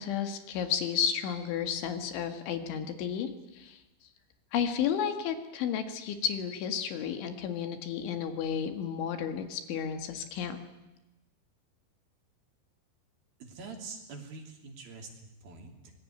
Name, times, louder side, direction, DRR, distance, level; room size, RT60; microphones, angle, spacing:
voice 1, 0.0-3.8 4.5-10.6, left 8 dB, 70° left, 8 dB, 4.0 m, -32 dB
voice 2, 13.4-15.9, right 4 dB, 50° right, 4 dB, 4.3 m, -45 dB
25.0 x 20.0 x 9.3 m, 1.0 s
omnidirectional pair, 5.8 m